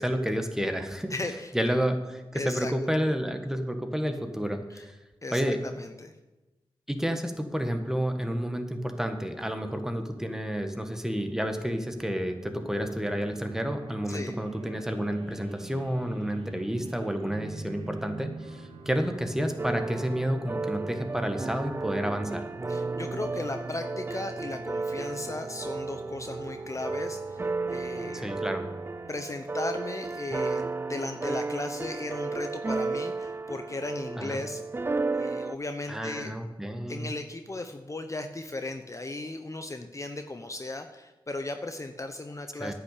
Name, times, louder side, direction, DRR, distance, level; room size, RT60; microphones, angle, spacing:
voice 1, 0.0-1.1 1.5-4.9 5.3-5.6 6.9-22.4 28.1-28.6 34.2-34.4 35.9-37.1 42.6-42.7, equal, 5° right, 6 dB, 1.5 m, -30 dB
voice 2, 1.1-1.5 2.3-2.7 4.7-4.8 5.2-6.1 14.1-14.3 22.7-28.3 29.1-34.6 35.1-36.3 36.9-42.7, left 2 dB, 35° left, 7 dB, 0.8 m, -36 dB
sound 1, 12.5-29.1, right 3 dB, 90° right, 1.1 m, -46 dB
sound 2, 19.6-35.5, right 3 dB, 25° right, 0.3 m, -33 dB
9.9 x 6.0 x 8.4 m, 1.1 s
cardioid pair, 45°, 9 cm